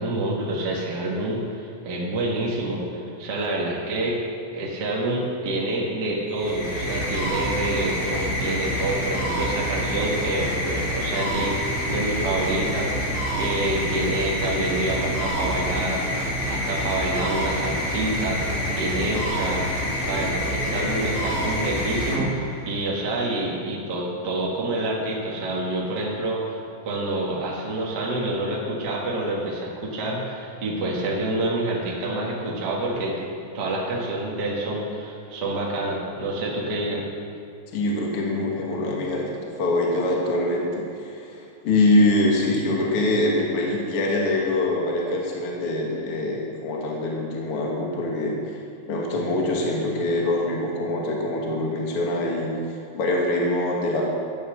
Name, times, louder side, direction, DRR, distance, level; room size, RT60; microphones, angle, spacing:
voice 1, 0.0-4.2 4.5-19.7 20.0-33.3 33.5-37.0, right 2 dB, 50° right, -4 dB, 1.2 m, -27 dB
sound 1, 6.3-22.8, equal, 70° left, 5.3 m, -27 dB
voice 2, 37.7-48.3 48.9-54.0, left 2 dB, 50° left, -2 dB, 1.8 m, -24 dB
14.5 x 9.9 x 6.4 m, 2.4 s
omnidirectional pair, 4.8 m